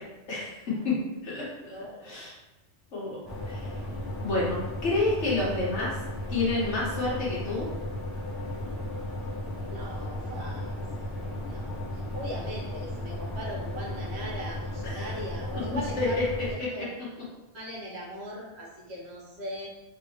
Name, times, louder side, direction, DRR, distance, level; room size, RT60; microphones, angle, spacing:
voice 1, 0.3-1.0 1.2-1.7 2.0-2.3 2.9-3.2 3.4-3.7 4.2-6.0 6.3-7.7 14.9-15.2 16.0-16.1 16.6-16.7, left 2 dB, 80° left, -6 dB, 1.4 m, -29 dB
voice 2, 1.7-2.2 9.7-16.2 16.5-16.9 17.5-19.7, equal, 70° right, -3 dB, 1.1 m, -40 dB
sound 1, 3.2-16.5, left 1 dB, ahead, 0.8 m, -35 dB
3.3 x 2.9 x 2.8 m, 1.0 s
omnidirectional pair, 1.2 m